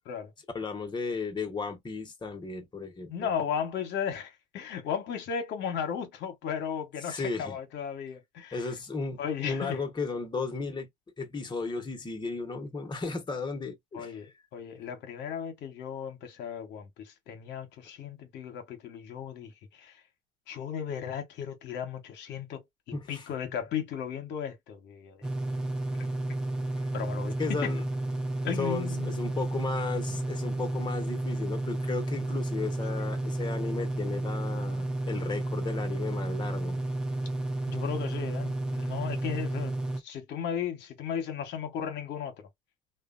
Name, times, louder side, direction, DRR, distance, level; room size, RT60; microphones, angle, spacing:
voice 1, 0.5-3.3 7.1-7.6 8.5-10.9 11.2-14.1 22.9-23.3 26.8-26.9 27.4-27.9 28.6-36.8, left 4 dB, 25° left, 0.9 m, -35 dB
voice 2, 3.1-8.6 9.2-9.8 13.9-20.0 20.5-22.6 23.1-25.3 26.0-26.4 26.9-27.7 28.4-29.2 37.7-39.7 40.0-42.3, left 7 dB, 70° left, 0.9 m, -35 dB
sound 1, 25.2-40.0, right 2 dB, 5° right, 0.7 m, -32 dB
2.7 x 2.2 x 2.4 m
supercardioid pair, 70°, 19 cm